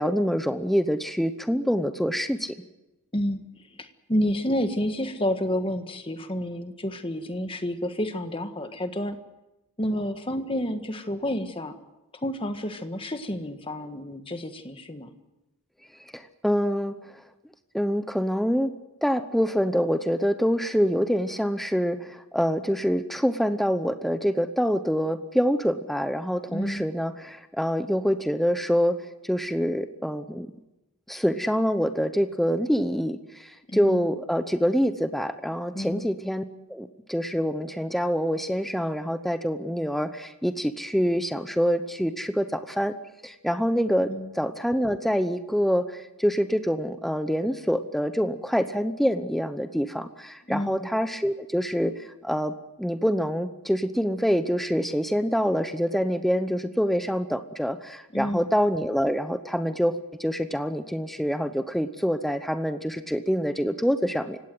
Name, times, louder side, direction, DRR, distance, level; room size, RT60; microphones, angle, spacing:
voice 1, 0.0-2.5 16.1-17.0 17.7-18.7 19.0-29.0 29.2-30.5 31.1-36.4 36.7-42.9 43.2-44.1 44.3-52.5 52.8-64.4, equal, ahead, 9 dB, 0.9 m, -26 dB
voice 2, 3.8-9.2 9.8-11.7 12.1-15.1 26.5-26.8 33.7-34.1 35.7-36.1 44.1-44.3 50.5-50.9 58.1-58.5, equal, 25° left, 8 dB, 1.6 m, -29 dB
28.5 x 17.0 x 7.9 m, 0.97 s
head